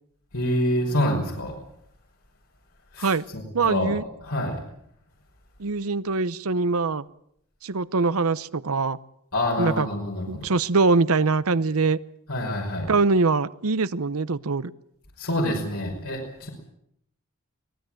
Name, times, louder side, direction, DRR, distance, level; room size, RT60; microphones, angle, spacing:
voice 1, 0.3-1.5 2.9-4.6 9.3-10.5 12.3-12.9 15.2-16.5, left 1 dB, 80° left, -2 dB, 5.5 m, -27 dB
voice 2, 3.5-4.0 5.6-7.0 7.6-9.0 9.6-9.9 10.3-12.0 12.9-14.7, right 4 dB, 75° right, 17 dB, 0.8 m, -23 dB
24.0 x 19.0 x 7.8 m, 0.74 s
head